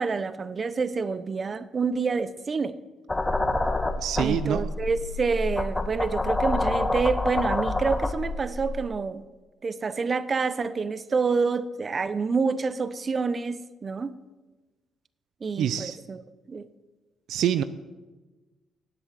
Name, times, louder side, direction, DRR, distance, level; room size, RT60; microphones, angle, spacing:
voice 1, 0.0-2.8 4.2-9.2 9.6-14.2 15.4-16.2 16.5-16.7, right 4 dB, 40° right, 14 dB, 0.9 m, -28 dB
sound 1, 3.1-8.8, left 2 dB, 15° left, 1.3 m, -27 dB
voice 2, 4.0-4.7 15.6-16.0 17.3-17.6, right 10 dB, 80° right, 13 dB, 0.6 m, -26 dB
18.5 x 8.0 x 7.6 m, 1.2 s
cardioid pair, 90°, 0 cm